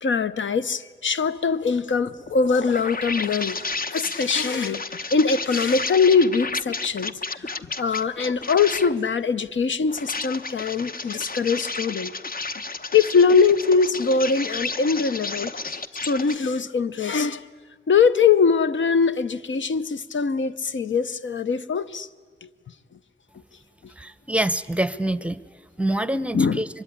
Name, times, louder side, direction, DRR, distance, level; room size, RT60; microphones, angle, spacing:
voice 1, 0.0-3.6 3.9-4.8 5.1-7.5 7.8-12.1 12.9-17.5 17.9-22.1 22.4-22.5 26.3-26.6, left 5 dB, 90° left, 0.7 m, -22 dB
sound 1, 2.0-9.0 9.8-16.3, left 3 dB, 50° left, 0.9 m, -32 dB
voice 2, 24.0-25.4 25.8-26.7, right 1 dB, 5° right, 0.7 m, -25 dB
24.5 x 22.0 x 9.9 m
wide cardioid pair, 100°, 19 cm